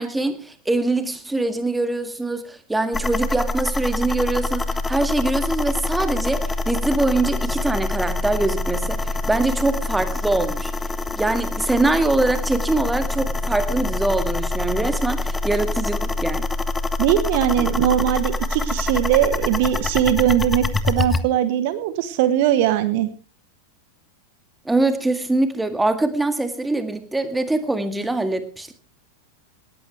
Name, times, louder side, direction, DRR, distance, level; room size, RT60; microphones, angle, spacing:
voice 1, 0.0-10.7 11.2-16.5 17.5-17.7 24.7-28.7, right 2 dB, 5° right, 10 dB, 1.9 m, -23 dB
sound 1, 2.9-21.2, left 2 dB, 10° left, 0.9 m, -25 dB
voice 2, 17.0-23.1, right 11 dB, 50° right, 13 dB, 1.2 m, -20 dB
18.5 x 14.5 x 3.3 m, 0.33 s
figure-of-eight pair, 90°, 0 cm